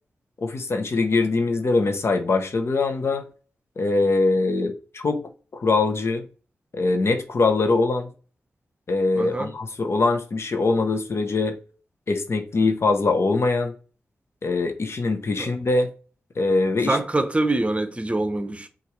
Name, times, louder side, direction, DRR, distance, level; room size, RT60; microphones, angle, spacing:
voice 1, 0.4-3.2 3.8-6.3 6.7-8.1 8.9-11.6 12.1-13.7 14.4-15.9 16.4-17.0, left 3 dB, 60° left, 0.8 m, -22 dB
voice 2, 9.2-9.5 15.4-15.5 16.9-18.7, right 2 dB, 25° right, 0.8 m, -24 dB
5.7 x 2.6 x 3.1 m
cardioid pair, 45°, 5 cm